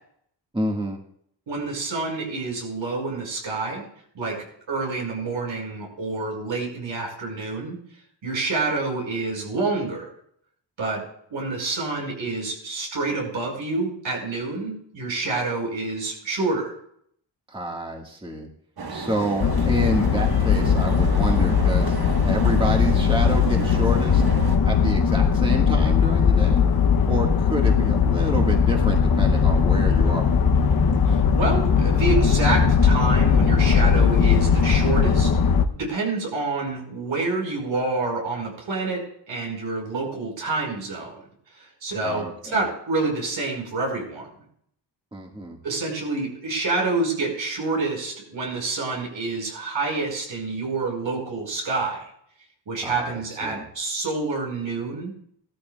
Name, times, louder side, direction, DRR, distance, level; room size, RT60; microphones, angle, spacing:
voice 1, 0.5-1.0 17.5-18.5 18.9-22.0 22.3-24.2 24.6-26.6 27.1-30.3 42.0-42.6 45.1-45.6 52.8-53.6, right 1 dB, 10° right, 1 dB, 1.7 m, -28 dB
voice 2, 1.5-3.8 4.2-4.4 4.7-7.8 8.2-10.1 10.8-11.0 11.3-16.7 31.1-35.3 35.7-41.2 41.6-44.3 45.6-52.0 52.7-55.1, right 3 dB, 80° right, 0 dB, 5.2 m, -27 dB
sound 1, 18.8-24.6, right 3 dB, 55° right, 1.6 m, -33 dB
sound 2, 19.4-35.6, left 6 dB, 50° left, 0.9 m, -19 dB
17.5 x 13.0 x 2.4 m, 0.66 s
wide cardioid pair, 100°, 45 cm